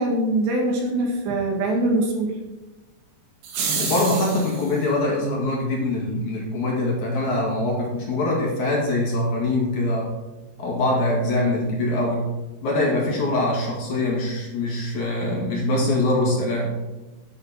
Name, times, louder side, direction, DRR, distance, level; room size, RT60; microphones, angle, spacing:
voice 1, 0.0-2.4, right 1 dB, 80° right, 0 dB, 4.1 m, -23 dB
sound 1, 3.4-4.8, right 5 dB, 65° right, 3.5 m, -28 dB
voice 2, 3.8-10.1 10.6-12.3 12.6-16.8, left 2 dB, 50° left, -2 dB, 2.9 m, -23 dB
11.0 x 8.3 x 4.3 m, 1.1 s
omnidirectional pair, 5.0 m